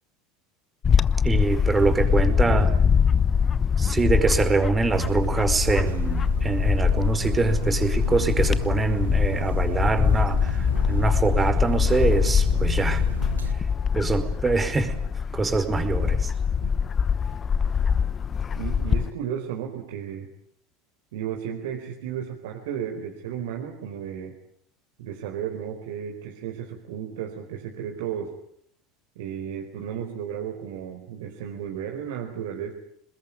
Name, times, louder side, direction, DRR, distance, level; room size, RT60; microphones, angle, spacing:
Bird / Wind, 0.8-19.1, left 6 dB, 30° left, 1.0 m, -23 dB
voice 1, 1.2-2.7 3.8-13.0 13.9-15.0 15.3-16.3, right 4 dB, 20° right, 8 dB, 5.0 m, -24 dB
voice 2, 1.9-2.7 18.6-20.3 21.1-24.3 25.0-28.3 29.2-32.7, right 9 dB, 70° right, 2 dB, 4.4 m, -34 dB
sound 1, 4.9-13.5, right 1 dB, 90° right, 2.4 m, -33 dB
28.5 x 21.0 x 9.6 m, 0.70 s
hypercardioid pair, 80°, 0 cm